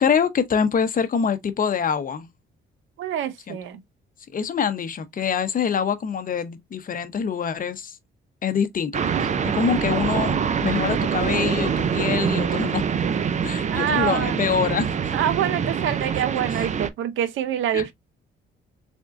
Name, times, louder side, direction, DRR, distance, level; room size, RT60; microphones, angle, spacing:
voice 1, 0.0-2.3 3.5-3.6 4.3-8.0 8.4-10.3 10.6-12.8 13.4-14.9 17.7-17.9, left 7 dB, 45° left, 0.7 m, -25 dB
voice 2, 3.0-3.8 13.7-14.4 15.1-17.9, right 10 dB, 80° right, 0.7 m, -26 dB
sound 1, 8.9-16.9, right 7 dB, 35° right, 0.5 m, -25 dB
3.7 x 3.5 x 2.4 m
cardioid pair, 90°, 20 cm